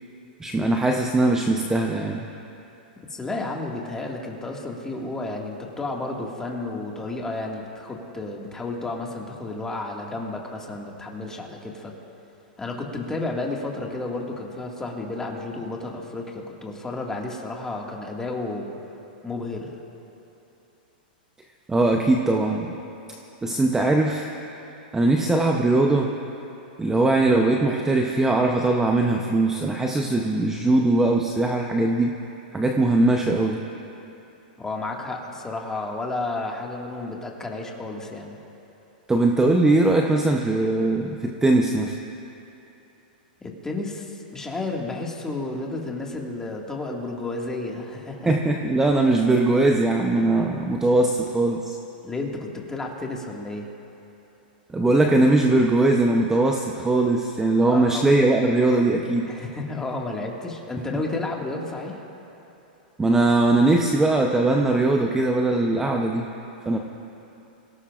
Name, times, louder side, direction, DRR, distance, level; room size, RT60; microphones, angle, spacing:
voice 1, 0.4-2.2 21.7-22.7 23.4-24.3 24.9-26.1 26.8-32.2 32.5-33.6 39.1-42.0 48.2-51.7 54.7-59.3 63.0-66.3 66.7-66.8, right 2 dB, 10° right, 2 dB, 0.8 m, -20 dB
voice 2, 3.1-11.9 12.6-18.7 19.2-19.8 34.6-38.4 43.4-48.3 52.0-53.7 57.6-58.1 59.3-62.0, left 2 dB, 10° left, -1 dB, 2.0 m, -32 dB
26.0 x 17.5 x 2.5 m, 2.9 s
hypercardioid pair, 125°, 5 cm